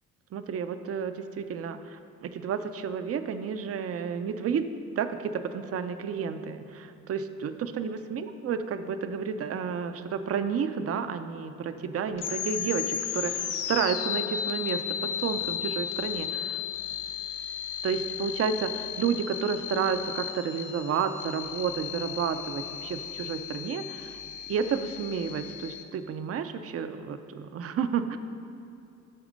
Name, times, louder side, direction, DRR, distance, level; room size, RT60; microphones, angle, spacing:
voice 1, 0.3-4.7 5.0-16.6 17.8-24.2 24.5-28.2, right 6 dB, 50° right, 9 dB, 0.6 m, -31 dB
sound 1, 12.2-25.8, left 9 dB, 80° left, 0.7 m, -34 dB
12.5 x 4.2 x 5.2 m, 2.6 s
cardioid pair, 90°, 30 cm